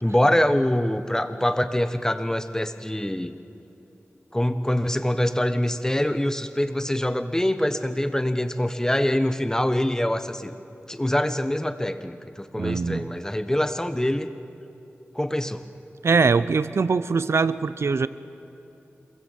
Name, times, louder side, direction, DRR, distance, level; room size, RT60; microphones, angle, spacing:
voice 1, 0.0-3.3 4.3-10.6 10.9-14.3 15.1-15.6, left 1 dB, 10° left, 10 dB, 1.2 m, -24 dB
voice 2, 12.6-13.1 16.0-18.1, right 4 dB, 70° right, 15 dB, 0.6 m, -22 dB
27.0 x 22.0 x 7.4 m, 2.9 s
wide cardioid pair, 60°, 5 cm